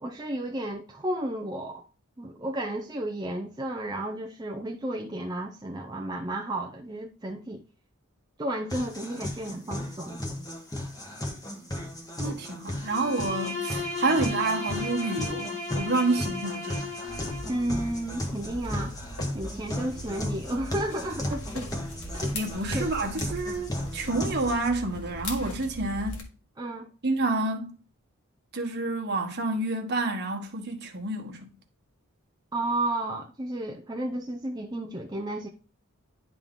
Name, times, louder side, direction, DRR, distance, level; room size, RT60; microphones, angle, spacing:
voice 1, 0.0-1.8 2.2-7.6 8.4-10.2 17.5-19.0 19.3-21.7 22.2-22.3 22.7-22.9 26.6-26.9 32.5-35.5, right 1 dB, 20° right, 0.5 m, -32 dB
sound 1, 8.7-24.7, left 1 dB, 15° left, 1.1 m, -35 dB
voice 2, 12.2-16.9 22.3-26.3 27.0-27.8 28.5-31.5, right 2 dB, 50° right, 1.2 m, -29 dB
Bowed string instrument, 12.8-17.7, left 3 dB, 35° left, 1.5 m, -35 dB
sound 2, 17.1-26.2, equal, 80° left, 1.6 m, -39 dB
10.5 x 3.6 x 3.6 m
head